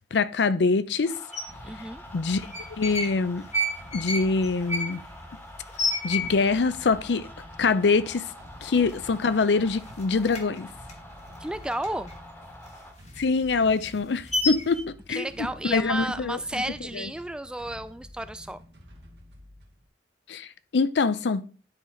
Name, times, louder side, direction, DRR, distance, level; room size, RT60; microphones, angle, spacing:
voice 1, 0.1-1.2 2.1-3.5 3.9-5.0 6.0-7.3 7.6-8.2 8.6-10.7 13.2-15.3 15.6-16.6 16.9-17.1 20.3-21.4, left 4 dB, 75° left, 0.5 m, -24 dB
sound 1, 1.0-12.9, left 1 dB, 10° left, 1.3 m, -47 dB
sound 2, 1.3-1.4 2.3-3.1 3.4-6.7 7.0-7.1 7.3-7.9 8.3-8.4 8.7-9.5 9.8-12.2 12.5-14.8, left 1 dB, 40° left, 1.4 m, -31 dB
sound 3, 1.5-19.9, equal, 75° right, 1.5 m, -49 dB
voice 2, 1.6-2.0 11.4-12.1 15.1-18.6, right 1 dB, 5° right, 0.3 m, -33 dB
9.9 x 4.0 x 4.5 m
head